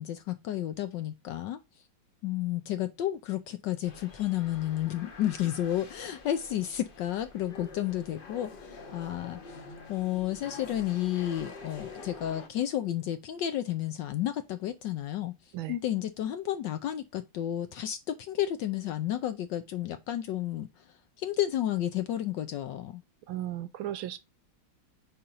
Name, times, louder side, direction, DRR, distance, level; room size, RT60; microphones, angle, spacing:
voice 1, 0.0-1.6 2.2-9.6 9.9-15.3 15.7-20.8 21.2-23.0, left 12 dB, 75° left, 1.1 m, -32 dB
sound 1, 3.8-12.5, left 3 dB, 45° left, 0.7 m, -47 dB
voice 2, 23.3-24.2, right 13 dB, 75° right, 1.3 m, -35 dB
4.9 x 4.3 x 5.4 m
omnidirectional pair, 2.4 m